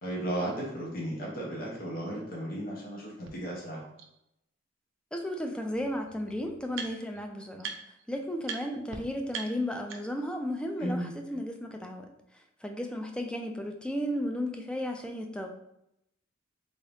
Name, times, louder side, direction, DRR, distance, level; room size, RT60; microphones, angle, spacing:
voice 1, 0.0-3.8 10.8-11.1, right 1 dB, 45° left, -4 dB, 0.9 m, -35 dB
sound 1, 3.3-3.4 4.0-4.1 5.4-5.5 5.7-7.2 7.6-8.0 8.4-8.6 8.9-9.0 9.3-10.3, right 6 dB, 70° right, 0.5 m, -41 dB
voice 2, 5.1-7.7 8.1-12.1 12.6-15.5, equal, 5° left, 3 dB, 0.3 m, -34 dB
3.6 x 2.6 x 3.3 m, 0.81 s
head